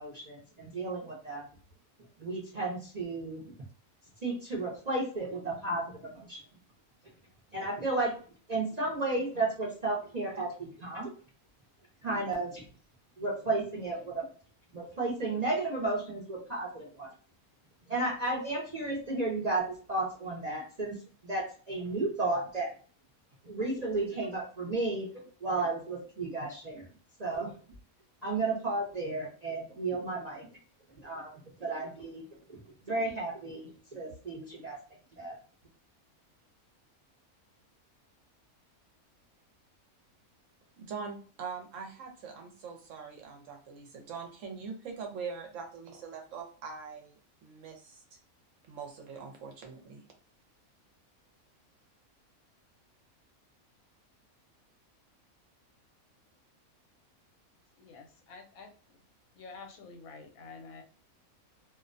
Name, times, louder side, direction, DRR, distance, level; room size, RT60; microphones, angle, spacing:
voice 1, 0.0-1.5 2.2-3.4 4.2-6.4 7.5-8.1 8.5-11.1 12.0-12.6 13.2-14.2 14.7-17.1 17.9-21.0 21.2-22.7 23.4-25.1 25.4-26.9 27.2-27.5 28.2-30.5 31.0-34.8 35.1-35.4, right 2 dB, 45° right, -4 dB, 0.5 m, -33 dB
voice 2, 40.8-48.2 48.7-50.0, right 5 dB, 65° right, 2 dB, 0.9 m, -43 dB
voice 3, 57.8-58.7 59.3-60.8, left 4 dB, 75° left, 4 dB, 1.1 m, -48 dB
2.5 x 2.1 x 2.4 m, 0.41 s
omnidirectional pair, 1.5 m